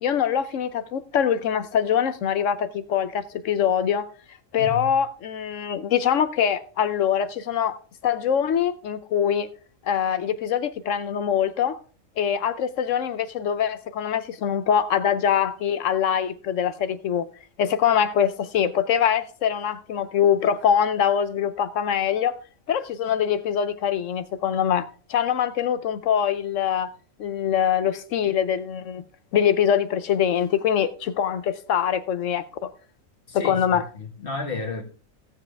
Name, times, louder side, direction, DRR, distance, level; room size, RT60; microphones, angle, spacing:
voice 1, 0.0-4.1 4.5-7.8 8.0-9.5 9.8-11.8 12.2-17.3 17.6-22.4 22.7-26.9 27.2-29.0 29.3-32.7 33.3-33.8, left 8 dB, 70° left, 1.0 m, -23 dB
voice 2, 4.6-4.9 33.3-34.8, left 2 dB, 45° left, 1.7 m, -32 dB
16.5 x 7.3 x 3.3 m
omnidirectional pair, 1.4 m